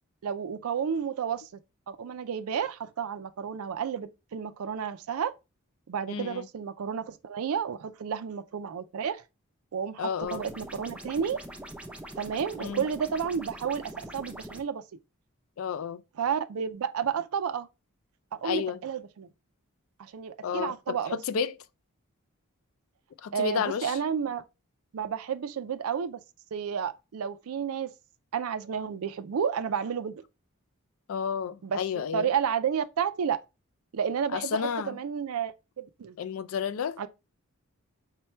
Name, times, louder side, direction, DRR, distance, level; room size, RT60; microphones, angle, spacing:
voice 1, 0.2-1.5 1.9-5.3 5.9-9.2 9.7-11.4 12.2-14.8 16.2-17.7 18.3-19.3 20.0-21.2 23.3-24.4 24.9-26.2 26.5-27.9 28.3-30.1 31.6-31.8 32.1-33.4 33.9-34.6 34.9-35.5 35.8-36.2 37.0-37.1, right 7 dB, 75° right, 0.4 m, -31 dB
voice 2, 6.1-6.5 10.0-10.4 12.6-12.8 15.6-16.0 18.4-18.8 20.4-21.5 23.2-24.0 31.1-32.3 34.3-35.0 36.2-37.0, left 7 dB, 65° left, 0.3 m, -31 dB
sound 1, 10.2-14.6, right 1 dB, 5° right, 0.4 m, -43 dB
4.4 x 2.2 x 4.2 m
head